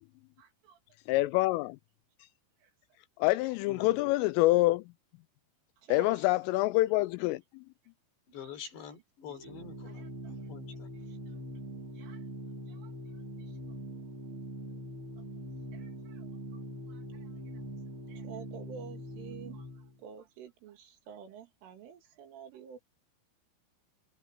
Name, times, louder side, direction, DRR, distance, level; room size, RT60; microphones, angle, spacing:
voice 1, 0.4-0.8 2.6-2.7 5.8-6.3 8.3-8.5 9.9-10.5 11.3-11.4 11.9-12.3 12.7-12.9 13.5-13.6 15.7-16.3 16.5-16.6 16.9-17.3 18.1-22.8, right 7 dB, 70° right, 5.0 m, -50 dB
voice 2, 1.1-1.8 3.2-4.8 5.9-7.4, left 19 dB, 85° left, 3.0 m, -26 dB
voice 3, 3.7-4.2 8.3-10.9, left 7 dB, 60° left, 5.9 m, -47 dB
Organ, 9.3-20.0, equal, 35° right, 2.7 m, -43 dB
omnidirectional pair, 5.9 m